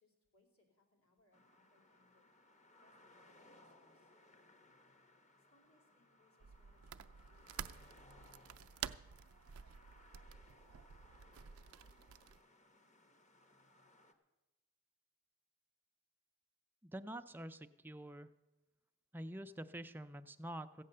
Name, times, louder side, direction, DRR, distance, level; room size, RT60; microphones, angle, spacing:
voice 1, 0.0-2.2 2.8-4.1 5.5-8.8, left 2 dB, 70° left, -1 dB, 2.8 m, -74 dB
sound 1, 1.3-14.1, left 1 dB, 35° left, 1.0 m, -65 dB
sound 2, 6.4-12.4, right 9 dB, 75° right, 0.4 m, -50 dB
voice 2, 16.8-18.3 19.1-20.8, right 1 dB, 10° right, 9 dB, 0.3 m, -47 dB
15.0 x 8.4 x 6.6 m, 1.1 s
head